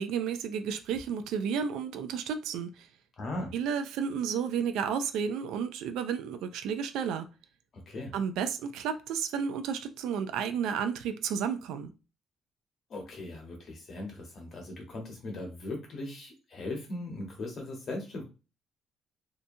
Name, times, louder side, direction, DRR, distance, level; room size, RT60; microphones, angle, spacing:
voice 1, 0.0-2.9 3.5-7.3 8.1-11.9, right 7 dB, 90° right, 0.4 m, -32 dB
voice 2, 3.2-3.5 7.7-8.1 12.9-18.2, left 2 dB, 45° left, 1.1 m, -39 dB
2.8 x 2.2 x 2.7 m
cardioid pair, 145°, 0 cm